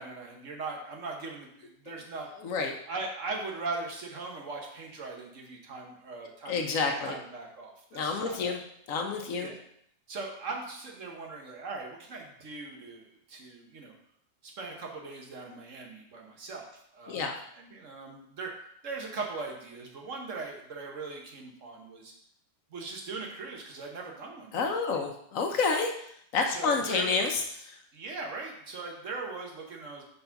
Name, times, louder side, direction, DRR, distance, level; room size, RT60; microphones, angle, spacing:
voice 1, 0.0-2.3 2.9-8.5 9.4-9.6 10.1-13.9 14.4-17.3 17.6-18.5 18.8-22.1 22.7-24.6 26.5-27.1 27.9-30.0, right 3 dB, 55° right, 1 dB, 1.3 m, -40 dB
voice 2, 6.5-7.2 7.9-8.6 8.9-9.5 17.1-17.3 24.5-25.9 26.3-27.8, left 4 dB, 65° left, 3 dB, 1.0 m, -29 dB
4.5 x 4.1 x 5.7 m, 0.70 s
omnidirectional pair, 1.6 m